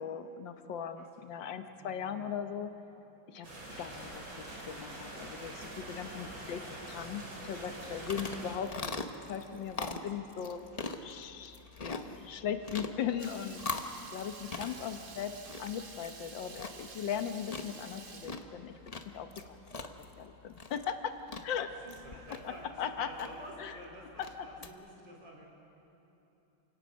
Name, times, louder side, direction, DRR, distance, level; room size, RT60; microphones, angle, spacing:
voice 1, 0.0-2.7 3.3-3.5 3.8-8.9 9.3-10.7 11.0-18.7 19.1-19.6 19.8-21.2 21.4-21.7 22.4-23.3 23.6-23.7 24.2-24.3, left 8 dB, 75° left, 8 dB, 1.6 m, -38 dB
voice 2, 0.9-1.3 1.8-2.0 6.3-7.0 8.0-8.3 14.3-15.3 16.4-16.5 21.6-25.5, equal, 65° right, -1 dB, 4.5 m, -52 dB
sound 1, 3.4-8.6, right 1 dB, 85° right, 4.4 m, -45 dB
sound 2, 7.6-24.7, left 3 dB, 35° left, 0.6 m, -43 dB
Water tap faucet / Liquid, 13.2-18.3, right 4 dB, 35° right, 1.1 m, -50 dB
28.0 x 17.5 x 6.3 m, 3.0 s
omnidirectional pair, 2.1 m